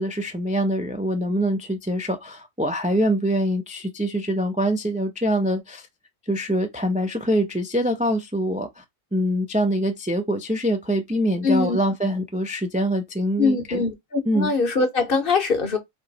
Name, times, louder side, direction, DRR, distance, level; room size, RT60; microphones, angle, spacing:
voice 1, 0.0-5.8 6.3-8.8 9.1-13.8 14.3-14.5, equal, 10° right, 0.3 m, -24 dB
voice 2, 11.4-11.8 13.4-15.8, left 4 dB, 50° left, 1.0 m, -22 dB
3.9 x 2.9 x 4.0 m
omnidirectional pair, 1.4 m